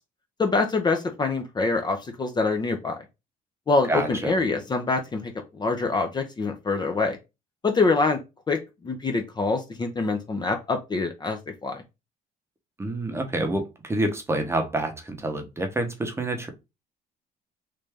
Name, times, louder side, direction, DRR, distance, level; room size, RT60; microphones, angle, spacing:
voice 1, 0.4-3.0 3.7-7.2 7.6-8.2 8.5-11.8, left 3 dB, 25° left, 5 dB, 0.6 m, -25 dB
voice 2, 3.9-4.3 12.8-16.5, right 1 dB, 15° right, 5 dB, 0.8 m, -27 dB
3.2 x 2.6 x 3.4 m, 0.25 s
cardioid pair, 110°, 17 cm